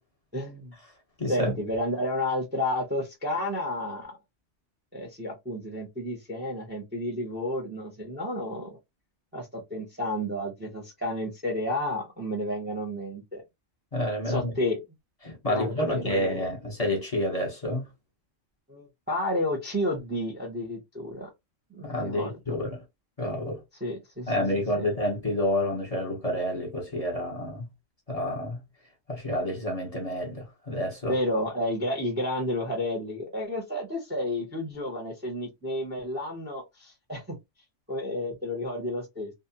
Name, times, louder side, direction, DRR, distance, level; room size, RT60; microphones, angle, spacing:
voice 1, 0.3-0.7 1.3-4.2 4.9-8.8 9.3-13.4 14.3-14.8 15.5-16.4 18.7-21.3 21.7-22.5 23.8-24.4 24.7-24.8 31.1-37.4 37.9-39.3, left 1 dB, 10° right, 0.6 m, -31 dB
voice 2, 1.2-1.5 13.9-14.5 15.2-17.8 21.8-22.8 23.2-23.6 24.3-27.7 28.1-28.6 29.1-31.2, left 1 dB, 30° left, 0.9 m, -29 dB
2.5 x 2.1 x 2.8 m
omnidirectional pair, 1.3 m